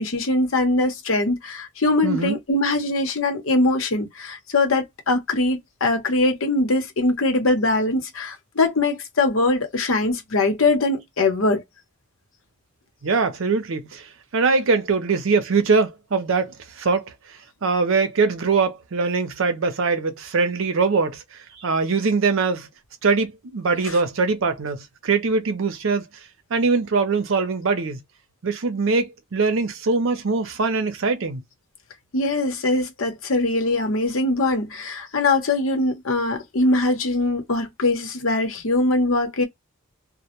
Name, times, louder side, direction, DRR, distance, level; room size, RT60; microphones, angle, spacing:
voice 1, 0.0-11.6 32.1-39.4, left 2 dB, 80° left, 0.8 m, -22 dB
voice 2, 2.0-2.4 13.0-22.7 23.0-26.0 26.5-28.0 28.4-31.4, right 4 dB, 75° right, 0.6 m, -22 dB
2.1 x 2.1 x 2.8 m
head